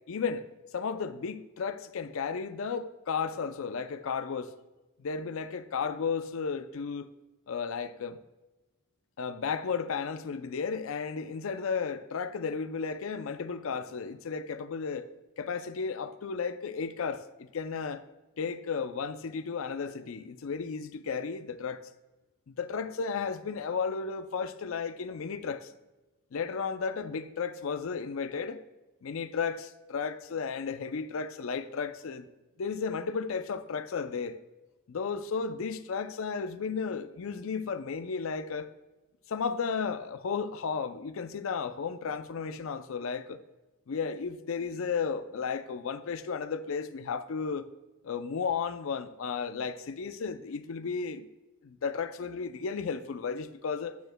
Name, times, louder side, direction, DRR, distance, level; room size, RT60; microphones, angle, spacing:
voice 1, 0.1-0.4 0.7-4.5 5.0-7.1 7.5-8.2 9.2-15.1 15.4-18.0 18.4-21.8 22.5-25.7 26.3-28.6 29.0-32.2 32.6-34.4 34.9-38.7 39.3-43.4 43.9-47.7 48.0-51.3 51.6-54.0, left 5 dB, 65° left, 0.4 m, -34 dB
9.8 x 9.2 x 2.2 m
head